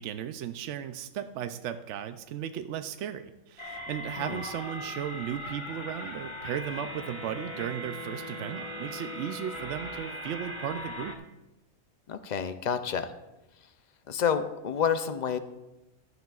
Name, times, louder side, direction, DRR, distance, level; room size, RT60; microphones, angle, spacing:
voice 1, 0.0-11.2, right 9 dB, 65° right, 9 dB, 0.8 m, -36 dB
sound 1, 3.6-11.1, left 1 dB, 25° left, 1.0 m, -39 dB
voice 2, 12.1-13.1 14.1-15.4, left 7 dB, 80° left, 9 dB, 0.4 m, -29 dB
15.0 x 11.5 x 2.4 m, 1.0 s
omnidirectional pair, 1.5 m